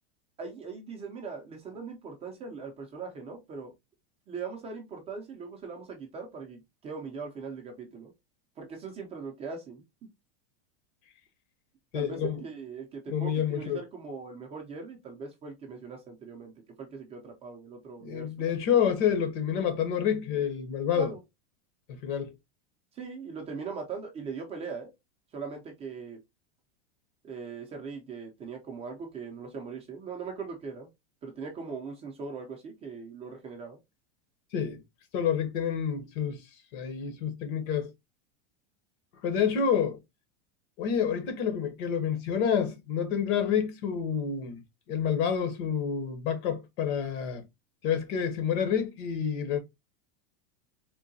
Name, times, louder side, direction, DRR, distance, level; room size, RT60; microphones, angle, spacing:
voice 1, 0.4-3.7 4.3-8.1 8.6-9.8 11.9-16.5 16.8-18.5 20.9-21.2 22.9-24.9 25.3-26.2 27.2-30.9 31.2-33.8, right 5 dB, 20° right, 0.5 m, -40 dB
voice 2, 11.9-12.4 13.1-13.8 18.0-21.1 22.0-22.3 34.5-34.8 35.1-36.4 36.7-37.9 39.2-40.0 40.8-44.6 44.9-47.4 47.8-49.6, left 8 dB, 50° left, 0.9 m, -28 dB
3.7 x 2.2 x 2.6 m
supercardioid pair, 155°, 33 cm